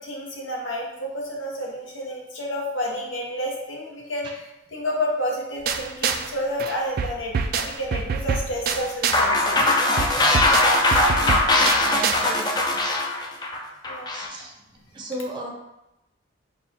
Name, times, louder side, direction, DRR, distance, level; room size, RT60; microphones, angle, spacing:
voice 1, 0.0-4.3 4.7-9.6 10.2-10.4 10.7-11.1 13.8-14.1, equal, 80° left, -1 dB, 0.9 m, -30 dB
sound 1, 5.7-6.3 6.6-9.3 9.6-12.2, right 5 dB, 50° right, 0.3 m, -26 dB
sound 2, 9.1-14.3, left 2 dB, 20° left, 0.4 m, -20 dB
voice 2, 11.7-12.8 14.1-14.5 14.9-15.5, equal, 25° right, -1 dB, 0.6 m, -35 dB
4.1 x 2.3 x 4.1 m, 0.91 s
head